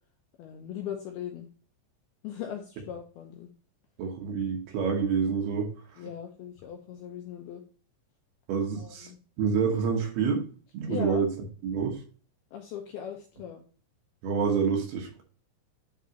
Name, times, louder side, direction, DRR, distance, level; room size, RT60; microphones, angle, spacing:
voice 1, 0.4-1.5 2.2-3.5 6.0-7.6 8.8-9.2 10.9-11.2 12.5-13.6, left 9 dB, 75° left, 3 dB, 2.3 m, -39 dB
voice 2, 4.0-5.7 8.5-9.1 9.4-10.5 10.7-11.3 11.6-12.0 14.2-15.2, right 6 dB, 70° right, 1 dB, 2.8 m, -27 dB
10.5 x 4.1 x 2.8 m, 0.40 s
omnidirectional pair, 5.3 m